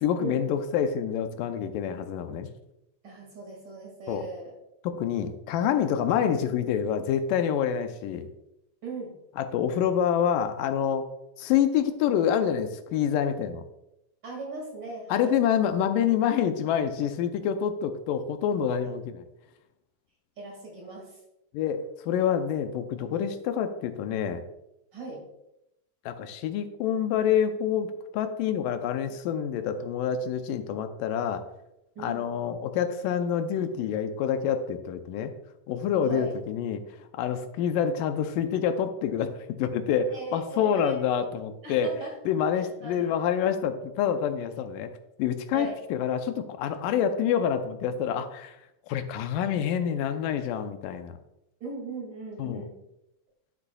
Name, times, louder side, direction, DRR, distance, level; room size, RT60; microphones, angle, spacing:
voice 1, 0.0-2.5 4.1-4.3 4.8-8.3 9.4-11.1 11.4-13.6 15.1-19.2 21.5-24.4 26.1-31.4 32.0-35.3 35.7-36.8 37.2-39.3 39.6-41.9 42.3-44.9 45.2-48.6 48.9-51.2 52.4-52.7, left 8 dB, 85° left, 8 dB, 2.3 m, -27 dB
voice 2, 3.0-4.5 8.8-9.2 14.2-15.3 20.4-21.2 23.0-23.2 24.9-25.3 32.0-32.3 36.0-36.4 40.1-41.0 41.6-42.1 42.5-43.1 45.5-45.8 51.6-52.7, right 3 dB, 40° right, -1 dB, 2.4 m, -39 dB
11.5 x 8.2 x 2.3 m, 0.87 s
omnidirectional pair, 3.8 m